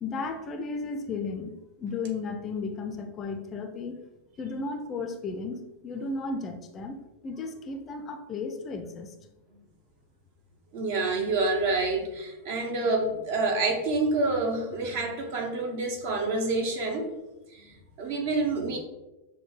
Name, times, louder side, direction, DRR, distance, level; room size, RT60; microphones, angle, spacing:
voice 1, 0.0-1.5 1.8-4.0 4.4-7.0 7.2-9.1, left 4 dB, 25° left, 6 dB, 0.4 m, -34 dB
voice 2, 10.7-17.1 17.5-18.8, right 3 dB, 50° right, 2 dB, 0.7 m, -28 dB
6.1 x 2.1 x 3.1 m, 1.1 s
figure-of-eight pair, 90°, 0 cm